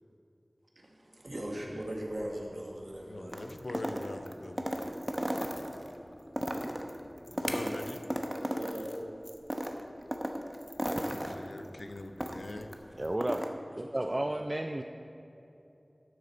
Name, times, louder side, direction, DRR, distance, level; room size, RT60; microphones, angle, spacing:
voice 1, 0.7-3.4 8.3-8.9 13.9-14.4, right 1 dB, 65° right, 0 dB, 1.5 m, -40 dB
sound 1, 1.3-13.1, left 1 dB, 35° left, 0.9 m, -53 dB
voice 2, 3.1-4.9 7.3-8.0 11.0-12.7, left 2 dB, 80° left, 8 dB, 0.5 m, -43 dB
sound 2, 3.3-5.9 6.3-9.0 9.3-12.7 13.0-13.5, equal, 10° right, 0.8 m, -35 dB
voice 3, 13.0-13.4 13.8-14.8, right 1 dB, 35° right, 6 dB, 0.3 m, -32 dB
12.0 x 6.7 x 4.3 m, 2.9 s
wide cardioid pair, 45°, 0 cm